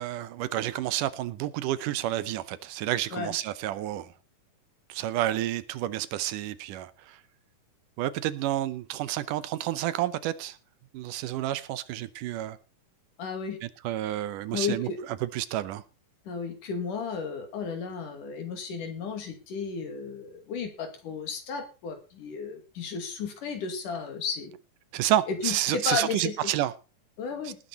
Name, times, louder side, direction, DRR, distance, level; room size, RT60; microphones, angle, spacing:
voice 1, 0.0-4.1 4.9-7.2 8.0-10.6 10.9-12.6 13.6-14.9 15.2-15.8 24.9-26.7, right 13 dB, 80° right, 2.3 m, -30 dB
voice 2, 13.2-13.6 14.5-15.0 16.3-24.5 25.3-26.4 27.2-27.6, left 5 dB, 70° left, 4.1 m, -33 dB
19.0 x 9.5 x 4.2 m
omnidirectional pair, 3.8 m